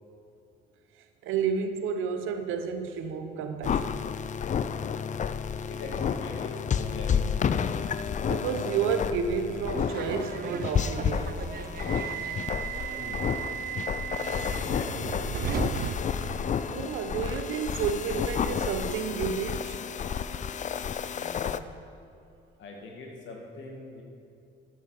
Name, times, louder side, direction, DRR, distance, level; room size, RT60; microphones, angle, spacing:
voice 1, 1.2-4.0 8.3-11.5 16.6-19.8, right 6 dB, 90° right, 7 dB, 0.9 m, -31 dB
sound 1, 3.6-21.6, left 7 dB, 40° left, 0.4 m, -31 dB
voice 2, 5.7-7.4 13.0-13.2 14.5-15.6 21.1-21.6 22.6-24.0, left 2 dB, 70° left, 0 dB, 2.2 m, -42 dB
Subway metro underground, 9.4-17.0, right 9 dB, 50° right, 0.4 m, -36 dB
13.5 x 6.8 x 5.0 m, 2.6 s
cardioid pair, 90°, 20 cm